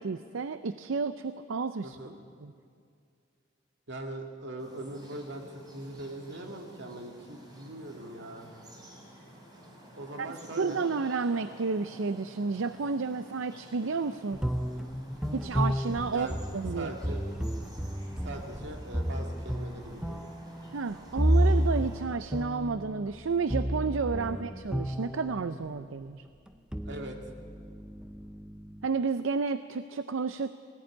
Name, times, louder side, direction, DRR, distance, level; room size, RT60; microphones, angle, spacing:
voice 1, 0.0-2.0 2.4-2.5 10.2-10.3 10.6-14.4 15.3-16.3 16.5-16.9 20.7-26.2 28.8-30.5, right 4 dB, 80° right, 12 dB, 0.6 m, -31 dB
voice 2, 1.8-2.2 3.9-8.5 9.9-10.9 16.1-16.4 16.7-17.3 18.2-20.3 24.2-24.5 26.8-27.2, right 1 dB, 65° right, 3 dB, 2.3 m, -41 dB
sound 1, 4.6-22.0, right 1 dB, 20° right, 4.5 m, -51 dB
sound 2, 14.3-25.8 26.5-28.9, equal, 5° right, 0.6 m, -31 dB
19.5 x 16.5 x 9.7 m, 2.3 s
head